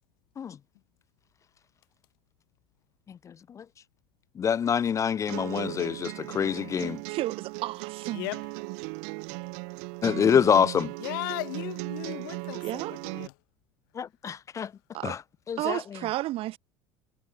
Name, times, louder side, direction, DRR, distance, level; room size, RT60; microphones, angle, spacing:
voice 1, 4.4-7.0 10.0-10.9 14.0-14.7 15.0-15.2 15.5-15.8, left 7 dB, 30° left, 0.3 m, -25 dB
sound 1, 5.3-13.3, right 40 dB or more, 75° right, 1.3 m, -37 dB
voice 2, 7.1-8.3 12.6-12.9 14.9-15.2 15.6-16.6, right 16 dB, 60° right, 0.8 m, -32 dB
voice 3, 8.1-8.5 11.0-13.3, left 25 dB, 80° left, 4.1 m, -36 dB
supercardioid pair, 85°, 11 cm